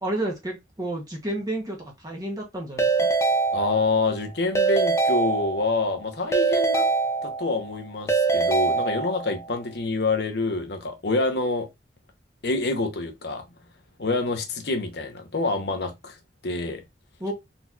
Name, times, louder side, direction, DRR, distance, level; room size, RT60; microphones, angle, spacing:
voice 1, 0.0-3.1 17.2-17.3, right 1 dB, 20° right, 0.8 m, -31 dB
Keyboard (musical) / Ringtone, 2.8-4.1 4.5-5.9 6.3-7.7 8.1-9.4, right 4 dB, 15° left, 0.5 m, -23 dB
voice 2, 3.5-6.9 7.2-11.7 12.4-13.4 14.0-16.2 16.4-16.8, left 3 dB, 65° left, 0.8 m, -27 dB
4.0 x 2.8 x 2.3 m
head